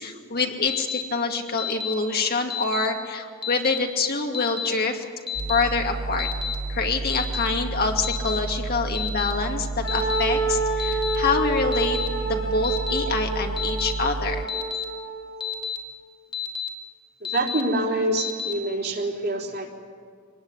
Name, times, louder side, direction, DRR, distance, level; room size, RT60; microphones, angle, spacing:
voice 1, 0.0-5.0 5.5-6.3 6.7-14.5, left 4 dB, 50° left, 3 dB, 2.4 m, -26 dB
Alarm, 0.7-1.0 1.6-1.9 2.5-2.9 3.4-3.8 4.3-4.7 5.3-5.6 6.2-6.6 7.1-7.5 8.0-8.4 9.0-9.3 9.9-10.2 10.8-11.2 11.7-12.1 12.6-13.0 13.6-13.9 14.5-14.8 15.4-15.8 16.3-16.7 17.3-17.6 18.2-18.5, left 8 dB, 25° left, 2.1 m, -30 dB
sound 1, 5.3-14.5, right 3 dB, 70° right, 0.9 m, -31 dB
Wind instrument woodwind instrument, 9.8-15.5, right 3 dB, 75° left, 7.4 m, -28 dB
voice 2, 17.2-19.7, right 1 dB, 50° right, 0 dB, 3.7 m, -26 dB
24.5 x 19.5 x 9.7 m, 2.1 s
head